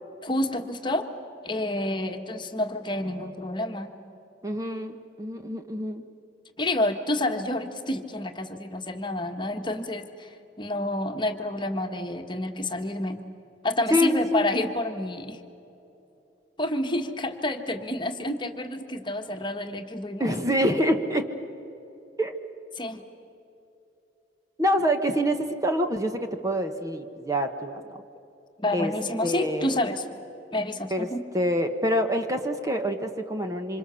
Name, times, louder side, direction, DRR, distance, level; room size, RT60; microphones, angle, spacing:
voice 1, 0.2-1.1 1.4-3.9 6.6-13.2 13.6-15.4 16.6-20.3 22.7-23.0 28.6-30.0 30.5-31.2, left 1 dB, 25° left, 6 dB, 1.5 m, -29 dB
voice 2, 4.4-6.0 13.9-14.4 20.2-21.3 22.2-22.4 24.6-28.0 28.7-28.9 29.2-29.8 30.9-31.1 31.3-33.8, equal, 20° right, 6 dB, 1.2 m, -26 dB
27.0 x 26.5 x 7.0 m, 2.8 s
head